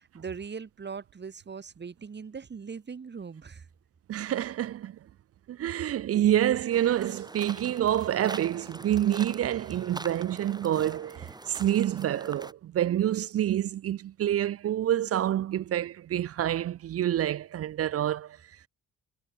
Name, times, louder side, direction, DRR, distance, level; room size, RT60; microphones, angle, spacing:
voice 1, 0.0-3.7, right 5 dB, 35° right, 3.1 m, -40 dB
voice 2, 4.1-5.0 5.5-18.4, right 11 dB, 50° right, 0.5 m, -27 dB
sound 1, 6.7-12.5, right 2 dB, 15° right, 3.2 m, -43 dB
cardioid pair, 90°, 30 cm